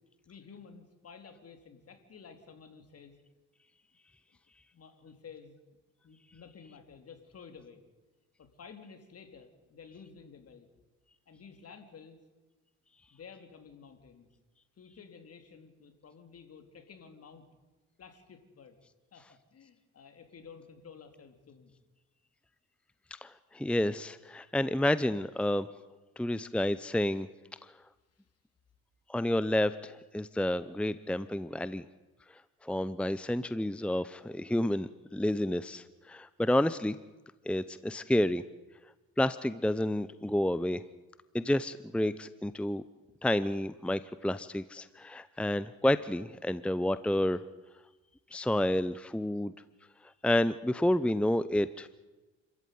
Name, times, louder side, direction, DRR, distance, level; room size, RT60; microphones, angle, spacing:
voice 1, 0.3-3.1 4.7-5.5 6.0-7.8 8.4-10.7 11.3-12.2 13.1-14.3 14.8-17.5 18.0-18.8 19.1-21.7 28.1-28.3, left 6 dB, 50° left, 7 dB, 3.9 m, -52 dB
voice 2, 23.2-25.7 26.2-27.3 29.1-31.9 32.6-37.0 37.5-38.4 39.2-40.8 41.3-42.8 43.2-47.4 48.3-49.5 50.2-51.9, left 1 dB, 5° left, 14 dB, 0.8 m, -30 dB
29.5 x 14.0 x 9.5 m, 1.2 s
cardioid pair, 90°, 30 cm